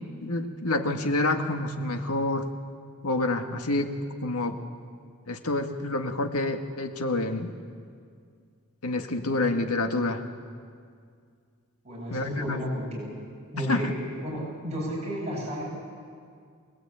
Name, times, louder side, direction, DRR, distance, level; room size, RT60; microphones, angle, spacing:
voice 1, 0.2-2.5 3.0-3.9 4.2-4.6 5.3-7.5 8.8-10.2 12.1-12.6 13.6-13.9, left 2 dB, 80° left, 5 dB, 1.9 m, -28 dB
voice 2, 11.8-13.1 13.5-15.6, equal, 30° right, -4 dB, 7.8 m, -32 dB
23.5 x 20.0 x 9.0 m, 2.2 s
head